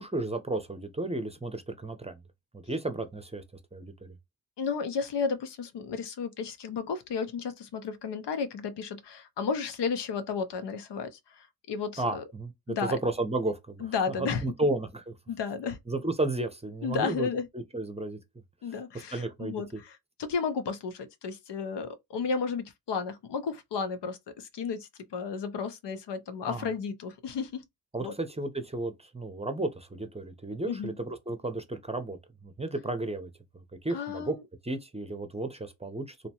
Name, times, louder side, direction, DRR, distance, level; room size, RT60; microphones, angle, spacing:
voice 1, 0.0-2.2 2.5-3.4 3.7-4.1 12.0-15.1 15.9-17.3 17.7-18.2 19.1-19.8 26.5-26.7 27.9-34.3 34.6-36.3, right 2 dB, 15° right, 0.7 m, -33 dB
voice 2, 4.6-12.2 12.7-13.0 13.8-14.4 15.3-15.8 16.8-17.5 18.6-27.6 28.0-28.1 30.6-30.9 33.9-34.4, left 5 dB, 65° left, 0.7 m, -33 dB
2.8 x 2.1 x 2.8 m
supercardioid pair, 45°, 46 cm